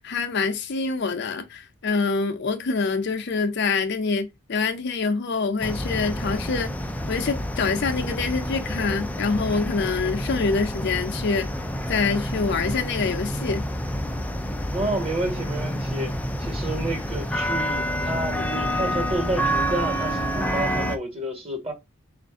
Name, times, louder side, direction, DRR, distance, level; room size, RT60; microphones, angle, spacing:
voice 1, 0.0-6.7 7.1-11.5 11.9-13.7, left 4 dB, 60° left, 0.6 m, -25 dB
sound 1, 5.6-21.0, equal, 10° left, 0.3 m, -28 dB
voice 2, 14.7-21.7, right 1 dB, 30° right, 1.3 m, -30 dB
4.1 x 2.5 x 3.5 m
head